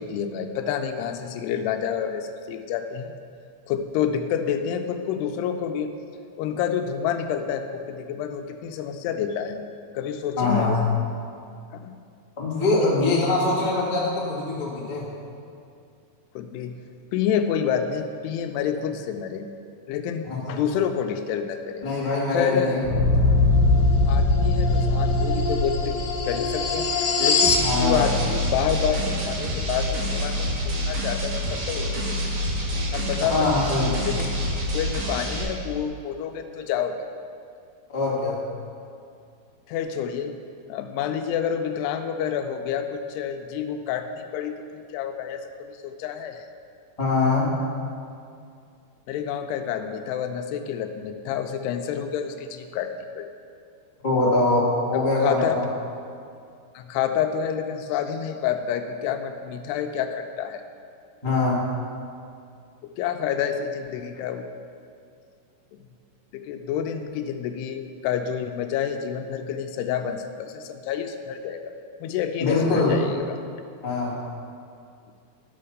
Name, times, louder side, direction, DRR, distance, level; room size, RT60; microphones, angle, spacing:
voice 1, 0.0-3.1 3.7-5.9 6.4-9.6 9.9-10.8 11.7-11.9 16.4-16.8 17.1-19.5 19.9-21.9 22.3-22.8 24.1-30.5 30.9-32.3 32.9-33.3 34.0-34.3 34.7-37.1 39.7-40.4 40.7-46.4 49.1-53.3 54.9-55.6 56.8-60.6 63.0-64.5 66.3-71.6 72.0-73.4, left 8 dB, 85° left, 7 dB, 2.6 m, -28 dB
voice 2, 10.4-10.8 12.4-15.1 20.2-20.6 21.8-22.9 27.6-28.0 33.3-34.0 37.9-38.4 47.0-47.6 54.0-55.6 61.2-61.7 72.4-73.0 73.8-74.2, left 2 dB, 15° left, -8 dB, 1.2 m, -23 dB
sound 1, 22.8-27.7, left 2 dB, 65° left, 2.7 m, -21 dB
sound 2, 27.4-35.4, equal, 55° right, 2.9 m, -27 dB
11.5 x 5.6 x 6.5 m, 2.4 s
omnidirectional pair, 4.7 m